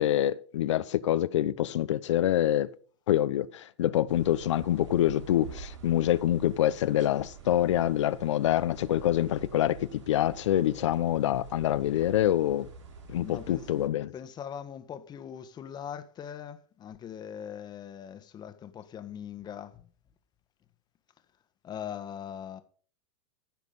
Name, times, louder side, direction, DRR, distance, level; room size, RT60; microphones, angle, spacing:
voice 1, 0.0-2.7 3.1-12.7 13.1-14.1, left 12 dB, 75° left, 0.9 m, -26 dB
sound 1, 4.1-13.9, right 6 dB, 80° right, 3.2 m, -47 dB
voice 2, 13.2-13.7 14.1-19.9 21.6-22.6, left 9 dB, 25° left, 1.4 m, -41 dB
15.5 x 6.0 x 5.5 m
hypercardioid pair, 115°, 15 cm